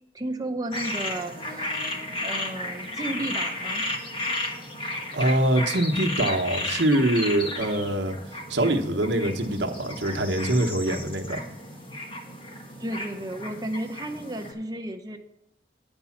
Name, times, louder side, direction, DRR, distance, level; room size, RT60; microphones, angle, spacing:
voice 1, 0.1-1.8 2.2-3.8 12.8-15.2, right 1 dB, 20° right, 5 dB, 0.8 m, -33 dB
sound 1, 0.7-14.5, left 2 dB, 30° left, 1.2 m, -33 dB
voice 2, 5.1-8.2 8.5-11.4, right 1 dB, 85° right, 3 dB, 1.0 m, -24 dB
9.2 x 5.4 x 7.2 m, 0.85 s
head